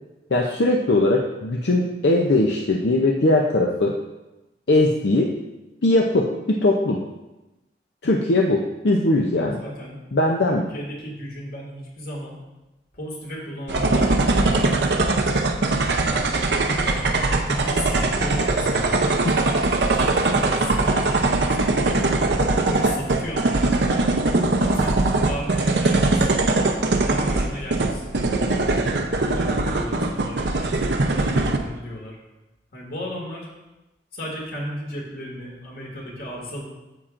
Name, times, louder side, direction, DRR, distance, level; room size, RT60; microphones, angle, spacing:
voice 1, 0.3-3.9 4.7-5.3 5.8-7.0 8.0-9.6 10.1-10.6, left 2 dB, 80° left, 0 dB, 0.6 m, -20 dB
voice 2, 9.3-10.0 10.5-12.4 12.9-15.0 16.7-17.1 17.3-19.0 19.8-22.0 22.7-24.0 24.6-26.5 26.9-28.2 29.1-32.2 32.7-33.5 34.1-36.6, equal, 55° left, -2 dB, 2.1 m, -35 dB
sound 1, 13.7-31.6, right 2 dB, 75° right, 0.6 m, -21 dB
9.3 x 7.3 x 2.5 m, 1.0 s
head